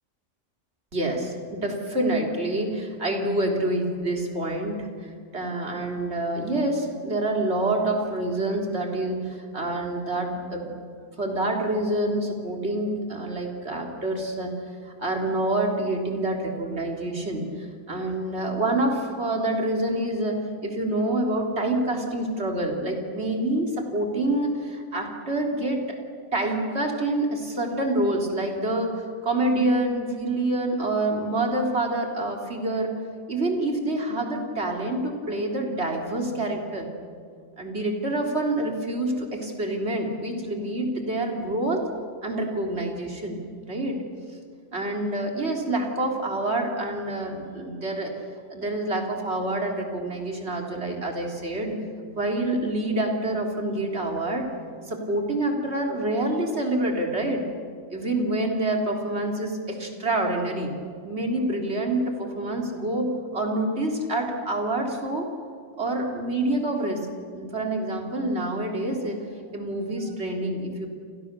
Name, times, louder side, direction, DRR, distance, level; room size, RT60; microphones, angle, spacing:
voice 1, 0.9-10.7 11.2-14.5 14.8-26.0 26.3-32.9 33.3-36.9 37.6-41.9 42.2-44.0 44.7-48.1 48.5-51.8 52.2-54.5 54.9-57.4 57.9-60.7 61.0-65.3 65.8-67.1 67.3-69.2 69.5-70.9, right 1 dB, 65° right, 1 dB, 3.8 m, -27 dB
29.5 x 29.0 x 6.9 m, 2.2 s
omnidirectional pair, 1.2 m